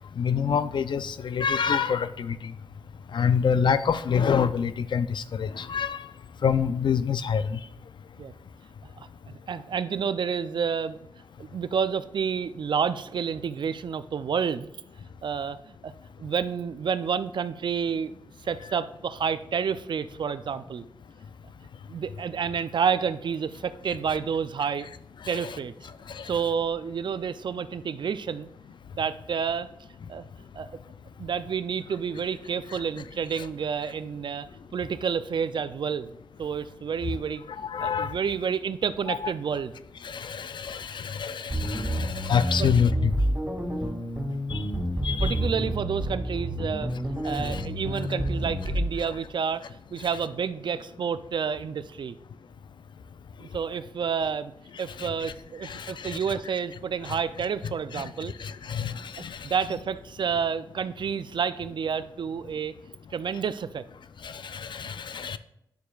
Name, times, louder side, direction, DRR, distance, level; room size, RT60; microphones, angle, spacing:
voice 1, 0.2-2.5 3.1-6.0 6.4-7.6 25.2-25.6 26.1-26.3 32.7-32.8 33.3-33.5 37.6-38.1 39.1-39.2 40.0-43.1 44.5-44.6 45.0-45.4 47.3-47.6 55.0-55.3 55.6-56.2 57.1-57.2 57.6-58.0 58.4-59.4 64.2-65.4, left 7 dB, 70° left, 13 dB, 0.4 m, -27 dB
voice 2, 9.0-11.0 11.4-14.7 15.2-15.6 15.8-15.9 16.2-20.8 21.9-24.9 25.3-25.7 26.2-28.5 28.9-29.7 30.1-30.3 30.5-30.8 31.2-34.5 34.7-36.1 36.4-37.4 37.8-39.7 42.6-42.7 45.2-46.9 47.2-52.2 53.4-54.5 54.8-58.3 59.2-62.7 63.1-63.8, right 6 dB, 70° right, 13 dB, 0.4 m, -29 dB
sound 1, 41.5-48.9, equal, 20° right, 2.1 m, -29 dB
9.3 x 6.8 x 2.4 m, 0.78 s
cardioid pair, 50°, 8 cm